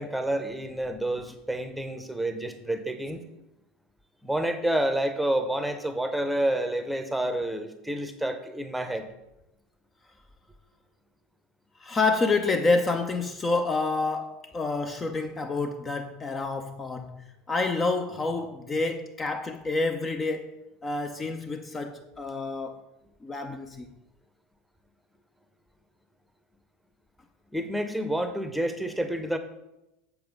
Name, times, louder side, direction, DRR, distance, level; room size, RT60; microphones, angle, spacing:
voice 1, 0.0-3.2 4.2-9.1 27.5-29.4, right 1 dB, 5° right, 0.9 m, -29 dB
voice 2, 11.8-20.5 20.8-22.8 23.2-23.9, left 3 dB, 25° left, 0.6 m, -28 dB
7.4 x 6.9 x 4.0 m
figure-of-eight pair, 75°, 0 cm